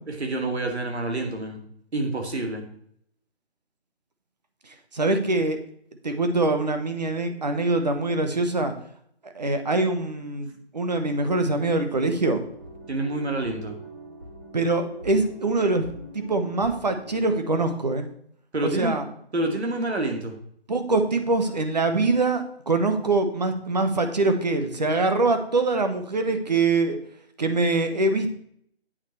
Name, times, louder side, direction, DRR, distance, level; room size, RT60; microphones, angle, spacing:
voice 1, 0.2-1.6 1.9-2.6 12.9-13.8 18.5-19.0 19.3-20.4, right 2 dB, 80° right, 4 dB, 2.2 m, -27 dB
voice 2, 4.9-5.6 6.0-8.7 9.2-12.4 14.5-15.9 16.1-18.1 18.6-19.0 20.7-27.0 27.4-28.3, right 3 dB, 40° right, 7 dB, 1.0 m, -24 dB
sound 1, 12.2-17.3, right 2 dB, 20° right, 1.1 m, -43 dB
8.5 x 5.7 x 4.6 m, 0.66 s
hypercardioid pair, 180°, 32 cm